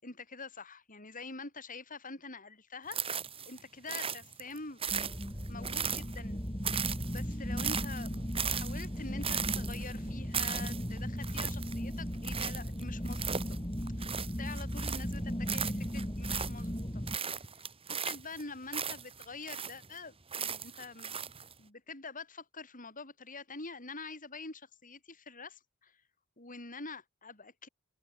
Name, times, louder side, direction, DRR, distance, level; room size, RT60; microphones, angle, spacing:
voice 1, 0.0-3.0 3.5-4.8 5.5-6.4 7.0-13.6 14.0-17.0 17.9-21.3 21.6-26.0 26.4-27.7, left 3 dB, 35° left, 6.1 m, -46 dB
sound 1, 2.9-3.6 3.9-6.3 6.6-15.2 15.5-16.8 17.1-19.9 20.3-21.5, right 7 dB, 25° right, 2.4 m, -37 dB
sound 2, 4.9-17.2, equal, 20° left, 5.4 m, -37 dB
open air
head